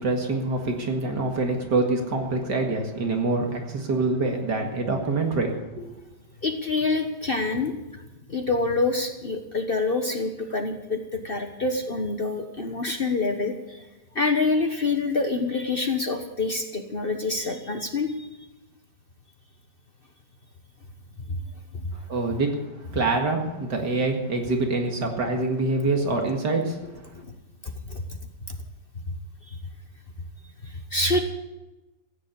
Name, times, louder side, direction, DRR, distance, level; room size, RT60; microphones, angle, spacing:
voice 1, 0.0-5.9 22.1-22.5 22.9-27.1, right 3 dB, 65° right, 3 dB, 2.5 m, -25 dB
voice 2, 6.4-13.9 14.1-18.3 21.3-21.4 21.7-21.9 27.6-28.2 28.5-28.6 29.5-29.6 30.6-31.2, left 3 dB, 35° left, 5 dB, 1.1 m, -27 dB
15.0 x 9.8 x 8.2 m, 1.1 s
omnidirectional pair, 2.0 m